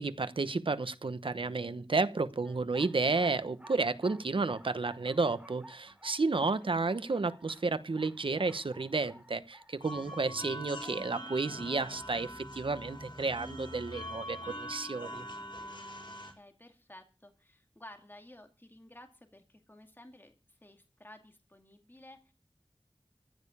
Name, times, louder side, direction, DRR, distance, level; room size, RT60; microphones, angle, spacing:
voice 1, 0.0-15.2, right 3 dB, 85° right, 1.0 m, -32 dB
sound 1, 2.7-10.2, right 1 dB, 15° right, 4.3 m, -55 dB
sound 2, 9.8-16.3, equal, 65° left, 4.6 m, -43 dB
voice 2, 16.3-22.3, left 1 dB, 25° left, 2.3 m, -54 dB
15.0 x 6.7 x 8.4 m
wide cardioid pair, 50°, 9 cm